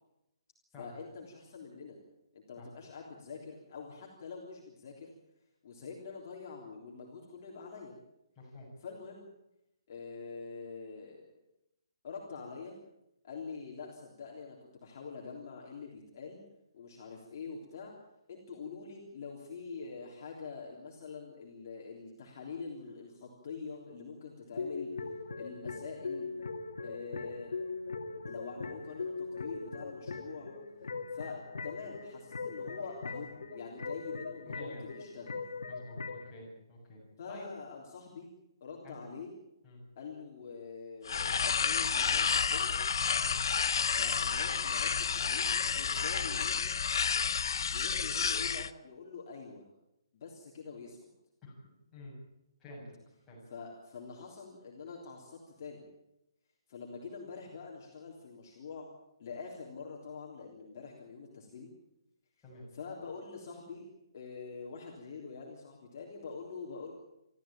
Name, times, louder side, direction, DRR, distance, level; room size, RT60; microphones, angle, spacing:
voice 1, 0.8-2.0 2.3-5.1 5.6-8.0 8.8-9.3 9.9-11.3 12.0-12.7 13.2-16.4 16.7-18.0 18.3-25.0 25.4-26.3 26.8-27.5 28.3-30.5 31.1-31.4 31.6-35.4 37.2-38.3 38.6-39.3 40.0-42.8 43.9-46.7 47.7-49.6 50.1-51.0 53.5-55.9 56.7-58.9 59.2-61.7 62.7-63.9 64.1-66.9, left 5 dB, 35° left, -2 dB, 3.5 m, -45 dB
voice 2, 8.4-8.7 31.2-31.3 34.4-34.9 35.7-37.0 37.3-37.5 38.8-39.0 39.6-39.8 43.2-43.4 51.4-51.5 51.9-52.1 52.6-52.9 53.3-53.4 62.4-62.6, left 1 dB, 5° left, -7 dB, 7.4 m, -49 dB
sound 1, 24.5-36.3, left 4 dB, 85° left, 2.5 m, -40 dB
sound 2, 41.1-48.7, left 6 dB, 55° left, 0.8 m, -30 dB
24.0 x 14.0 x 9.0 m, 0.89 s
hypercardioid pair, 175°, 3 cm